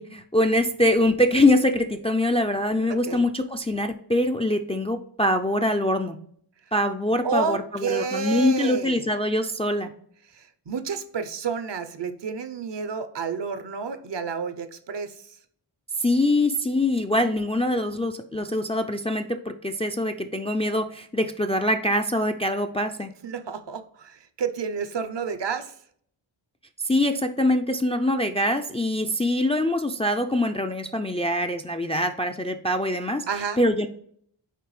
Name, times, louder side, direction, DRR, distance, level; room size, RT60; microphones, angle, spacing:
voice 1, 0.0-6.2 6.7-9.9 16.0-23.1 26.8-33.3 33.6-33.9, left 1 dB, 15° left, 6 dB, 0.3 m, -24 dB
voice 2, 7.2-9.1 10.3-15.4 23.2-25.7 33.3-33.6, right 5 dB, 60° right, 10 dB, 0.7 m, -30 dB
6.7 x 4.4 x 3.2 m, 0.63 s
wide cardioid pair, 65°, 48 cm